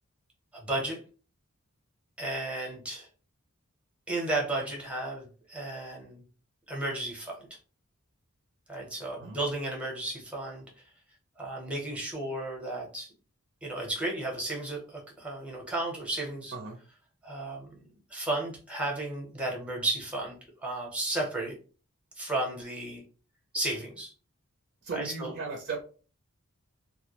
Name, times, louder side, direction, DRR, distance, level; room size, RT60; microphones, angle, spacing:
voice 1, 0.5-1.0 2.2-3.1 4.1-6.2 6.7-7.6 8.7-10.7 11.4-13.1 13.6-16.5 17.2-17.7 18.1-21.6 22.2-23.0 23.5-24.1 24.9-25.3, right 2 dB, 5° right, -2 dB, 0.7 m, -33 dB
voice 2, 24.8-25.8, right 4 dB, 45° right, 2 dB, 0.5 m, -36 dB
2.2 x 2.1 x 2.8 m, 0.38 s
head